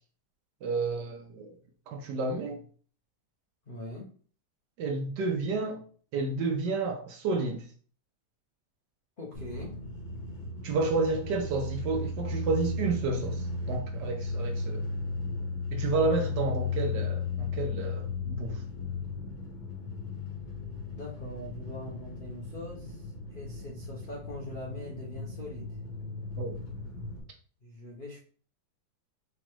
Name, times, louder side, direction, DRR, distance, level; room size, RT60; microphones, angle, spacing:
voice 1, 0.6-1.5 1.9-2.6 4.8-5.8 6.1-7.7 10.6-14.9 15.7-18.6 26.4-26.6, right 3 dB, 70° right, 1.2 m, -30 dB
voice 2, 3.7-4.1 9.2-9.8 20.9-25.8 27.6-28.2, left 1 dB, 80° left, 0.4 m, -42 dB
sound 1, 9.3-27.2, left 3 dB, 60° left, 1.5 m, -36 dB
5.0 x 2.3 x 3.0 m
omnidirectional pair, 2.1 m